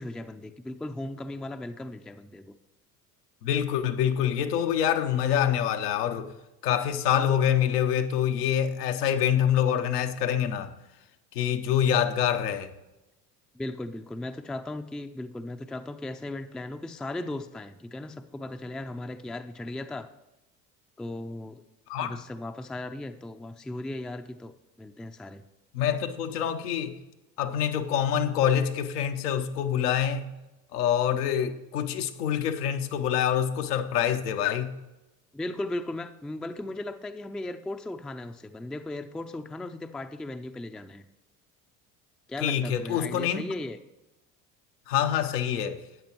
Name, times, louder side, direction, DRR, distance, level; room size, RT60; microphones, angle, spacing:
voice 1, 0.0-2.5 13.5-20.1 21.0-21.6 22.0-25.4 35.3-41.1 42.3-43.8, left 2 dB, ahead, 0.4 m, -37 dB
voice 2, 3.4-6.3 6.6-10.7 11.3-12.7 21.9-22.2 25.7-27.0 27.4-30.3 30.7-34.7 42.4-43.5 44.9-45.8, left 9 dB, 80° left, 0.9 m, -26 dB
13.0 x 8.8 x 3.0 m
hypercardioid pair, 65°, 47 cm